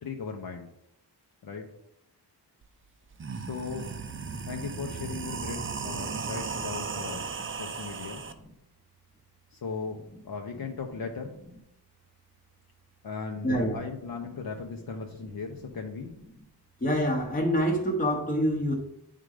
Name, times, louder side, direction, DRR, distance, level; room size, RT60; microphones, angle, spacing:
voice 1, 0.0-0.7 1.4-1.7 3.3-3.9 4.4-7.3 7.6-8.3 9.5-11.4 13.0-16.1, left 5 dB, 60° left, 2 dB, 0.9 m, -37 dB
sound 1, 2.6-2.7 3.1-8.3, right 5 dB, 30° right, 0.5 m, -36 dB
voice 2, 13.4-13.8 16.8-18.7, equal, 20° left, 1 dB, 1.0 m, -26 dB
9.7 x 3.8 x 4.9 m, 0.80 s
wide cardioid pair, 150°, 42 cm